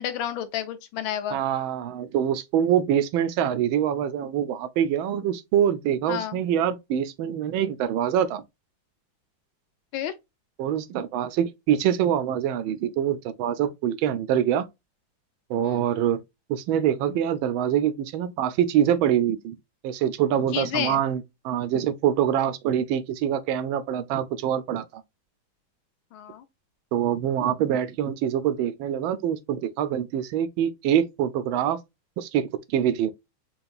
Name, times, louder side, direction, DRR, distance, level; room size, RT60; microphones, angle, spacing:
voice 1, 0.0-1.4 6.1-6.4 9.9-10.1 15.6-15.8 20.5-21.0 26.1-26.4, left 10 dB, 80° left, 1.5 m, -30 dB
voice 2, 1.3-8.4 10.6-14.7 15.5-16.2 16.5-19.5 19.8-24.8 26.9-31.8 32.2-33.1, right 9 dB, 80° right, 1.4 m, -25 dB
4.7 x 2.9 x 2.4 m
omnidirectional pair, 2.2 m